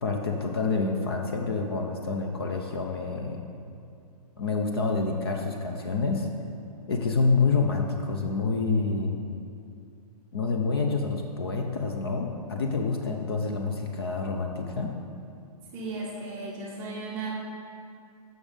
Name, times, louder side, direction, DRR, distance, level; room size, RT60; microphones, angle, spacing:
voice 1, 0.0-3.4 4.4-6.3 6.9-9.2 10.3-14.9, left 4 dB, 40° left, 2 dB, 0.5 m, -27 dB
voice 2, 15.7-17.3, right 3 dB, 10° right, -5 dB, 0.7 m, -35 dB
6.9 x 6.3 x 5.1 m, 2.5 s
hypercardioid pair, 175°, 20 cm